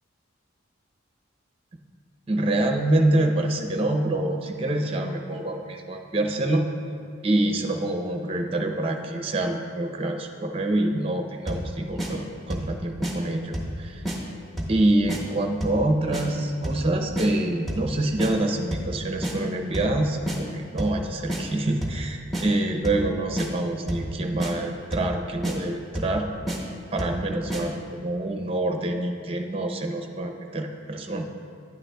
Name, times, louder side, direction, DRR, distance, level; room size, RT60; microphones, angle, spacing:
voice 1, 2.3-6.7 7.2-14.0 14.7-26.3 26.9-31.3, right 1 dB, 30° right, 4 dB, 0.6 m, -26 dB
sound 1, 11.5-11.7 12.0-12.1 12.5-12.7 13.0-13.1 13.5-13.8 14.1-14.2 14.6-14.8 15.1-15.2 15.6-15.8 16.1-16.3 16.6-16.9 17.2-17.3 17.7-17.9 18.2-18.3 18.7-18.9 19.2-19.4 19.7-20.0 20.3-20.4 20.8-21.0 21.3-21.4 21.8-22.0 22.3-22.5 22.8-23.1 23.4-23.5 23.9-24.1 24.4-24.5 24.9-25.1 25.4-25.6 26.0-26.2 26.5-26.6 27.0-27.2 27.5-27.6, right 1 dB, ahead, 0.8 m, -29 dB
10.5 x 8.9 x 2.3 m, 2.5 s
head